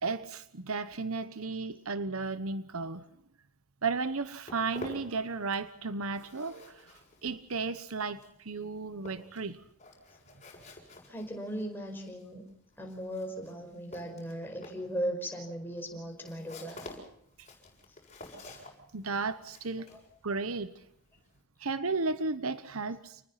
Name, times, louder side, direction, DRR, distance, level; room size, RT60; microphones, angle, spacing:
voice 1, 0.0-3.1 3.8-6.9 7.2-9.6 18.9-19.9 20.2-20.7 21.6-23.2, right 4 dB, 70° right, 1.1 m, -34 dB
Walk footsteps, 4.0-5.8 6.0-21.4, left 2 dB, 30° left, 7.1 m, -50 dB
voice 2, 11.1-12.4 12.8-16.9 19.9-20.0, equal, 10° left, 5.1 m, -37 dB
28.5 x 20.5 x 5.8 m
head